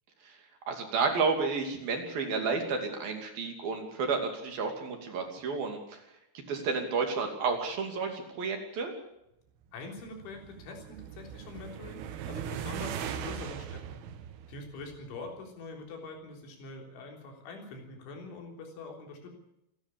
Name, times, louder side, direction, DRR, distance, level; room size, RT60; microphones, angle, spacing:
voice 1, 0.7-6.0 6.5-8.9, right 4 dB, 50° right, 3 dB, 4.1 m, -31 dB
voice 2, 9.7-14.0 14.5-19.3, left 3 dB, 70° left, 2 dB, 6.2 m, -44 dB
sound 1, 9.8-15.3, right 9 dB, 85° right, 4.1 m, -40 dB
27.5 x 11.5 x 8.6 m, 0.82 s
omnidirectional pair, 5.7 m